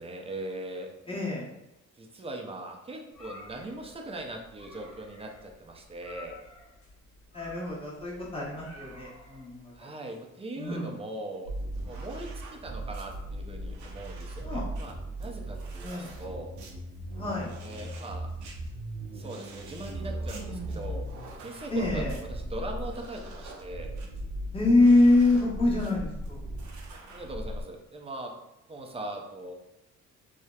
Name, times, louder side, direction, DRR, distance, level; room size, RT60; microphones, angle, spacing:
voice 1, 0.0-0.9 2.0-6.4 9.8-11.5 11.8-14.9 15.2-16.5 17.6-18.3 19.1-21.1 21.4-22.0 22.3-24.0 27.1-28.3 28.7-29.5, right 1 dB, 20° right, 2 dB, 0.4 m, -40 dB
voice 2, 1.1-1.5 7.3-9.9 10.6-10.9 14.4-14.7 15.8-16.2 17.1-17.5 21.7-22.1 24.5-26.4, left 2 dB, 20° left, -5 dB, 1.0 m, -25 dB
sound 1, 3.1-9.8, left 2 dB, 65° left, 0.8 m, -51 dB
sound 2, 11.5-27.6, right 1 dB, 70° right, 0.6 m, -38 dB
sound 3, 19.3-23.3, right 1 dB, 90° right, 0.9 m, -47 dB
2.8 x 2.0 x 2.2 m, 0.90 s
cardioid pair, 90°, 30 cm